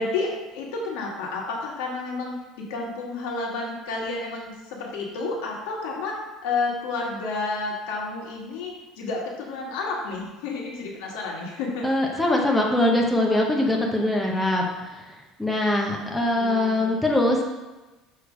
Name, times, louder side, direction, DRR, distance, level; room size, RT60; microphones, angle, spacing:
voice 1, 0.0-6.2 6.4-12.2 15.9-17.0, left 3 dB, 85° left, -2 dB, 1.6 m, -31 dB
voice 2, 11.8-17.4, left 1 dB, 5° left, -1 dB, 0.8 m, -23 dB
6.8 x 3.3 x 5.0 m, 1.1 s
cardioid pair, 150°, 0 cm